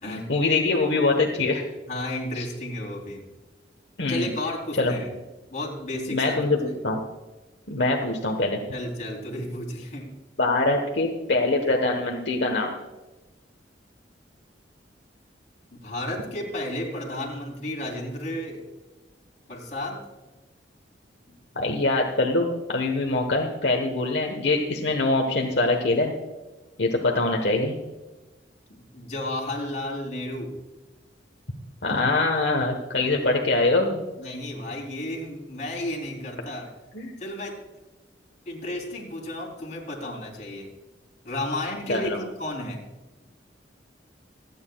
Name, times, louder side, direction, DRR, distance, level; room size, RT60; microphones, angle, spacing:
voice 1, 0.1-1.6 2.4-2.5 4.0-4.3 4.8-4.9 6.1-7.0 7.7-8.6 10.4-12.7 21.5-26.1 26.8-27.8 31.8-34.0 36.9-37.1 41.9-42.2, left 2 dB, 70° left, 1 dB, 1.2 m, -23 dB
voice 2, 1.9-3.2 4.1-5.1 5.5-6.5 8.7-10.1 15.7-18.6 19.5-20.0 21.3-21.4 28.7-30.5 34.2-36.7 37.2-37.6 38.4-40.7 41.2-42.8, left 1 dB, 40° left, -1 dB, 3.3 m, -32 dB
27.0 x 9.6 x 2.3 m, 1.1 s
head